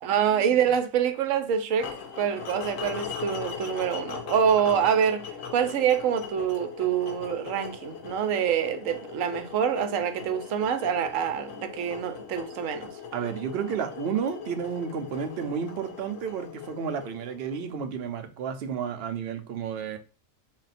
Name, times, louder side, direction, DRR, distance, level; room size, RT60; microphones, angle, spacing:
voice 1, 0.0-12.9, right 8 dB, 85° right, 1.0 m, -26 dB
sound 1, 1.8-17.9, left 6 dB, 90° left, 1.1 m, -40 dB
voice 2, 13.1-20.0, right 7 dB, 60° right, 0.8 m, -32 dB
4.1 x 2.2 x 4.0 m
omnidirectional pair, 1.3 m